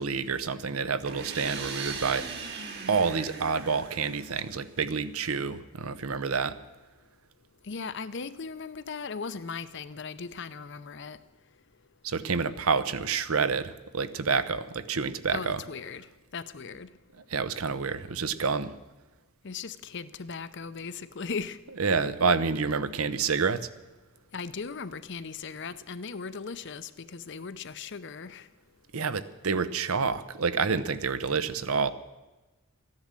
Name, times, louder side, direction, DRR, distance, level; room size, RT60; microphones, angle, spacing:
voice 1, 0.0-2.2 2.9-6.5 12.0-15.6 17.3-18.8 21.8-23.6 28.9-31.9, right 5 dB, 85° right, 13 dB, 0.8 m, -28 dB
sound 1, 1.0-4.8, right 5 dB, 50° right, 1.7 m, -39 dB
voice 2, 7.7-11.2 15.3-16.1 16.3-16.9 19.4-21.6 24.3-28.5, left 5 dB, 55° left, 13 dB, 0.7 m, -38 dB
14.0 x 10.5 x 7.6 m, 1.1 s
head